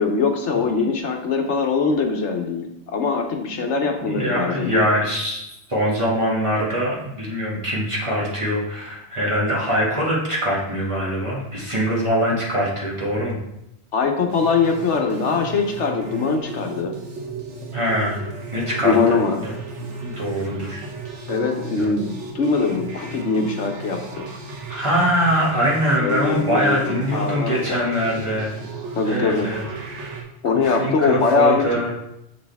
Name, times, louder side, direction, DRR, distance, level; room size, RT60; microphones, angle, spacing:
voice 1, 0.0-4.8 13.9-17.0 18.8-19.4 21.3-24.3 26.0-27.9 29.0-29.5 30.4-31.9, left 4 dB, 80° left, 4 dB, 1.3 m, -22 dB
voice 2, 4.0-13.4 17.7-18.2 18.5-19.5 20.0-20.8 21.8-21.9 24.7-28.5 29.0-29.6 30.5-31.9, equal, 25° right, -5 dB, 2.2 m, -23 dB
sound 1, 14.3-30.2, right 3 dB, 80° right, 1.5 m, -35 dB
7.0 x 6.6 x 3.5 m, 0.85 s
omnidirectional pair, 1.2 m